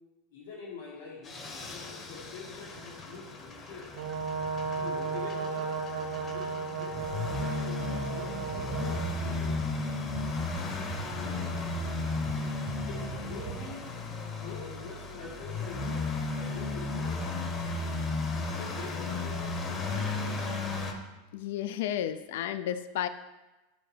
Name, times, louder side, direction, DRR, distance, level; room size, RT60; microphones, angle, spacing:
voice 1, 0.3-3.9 4.7-9.7 11.1-11.6 12.9-13.9 14.3-17.3 18.6-20.4, left 4 dB, 80° left, -2 dB, 1.8 m, -46 dB
sound 1, 1.2-20.9, left 3 dB, 25° left, 0.8 m, -35 dB
Brass instrument, 4.0-9.1, right 5 dB, 70° right, 1.0 m, -34 dB
sound 2, 8.5-13.8, right 8 dB, 25° right, 0.6 m, -43 dB
voice 2, 21.3-23.1, left 11 dB, 65° left, 12 dB, 0.4 m, -32 dB
12.5 x 4.4 x 3.3 m, 1.1 s
supercardioid pair, 170°, 0 cm